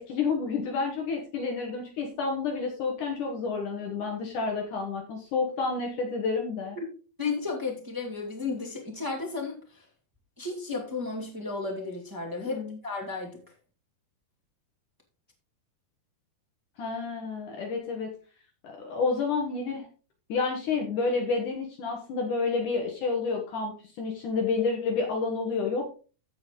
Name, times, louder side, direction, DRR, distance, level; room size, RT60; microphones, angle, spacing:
voice 1, 0.0-6.8 12.4-12.8 16.8-18.1 18.6-19.9 20.3-26.0, left 4 dB, 60° left, 1 dB, 2.5 m, -29 dB
voice 2, 7.2-9.8 10.4-13.4, left 4 dB, 15° right, -2 dB, 0.7 m, -33 dB
14.5 x 5.1 x 3.8 m, 0.36 s
omnidirectional pair, 4.6 m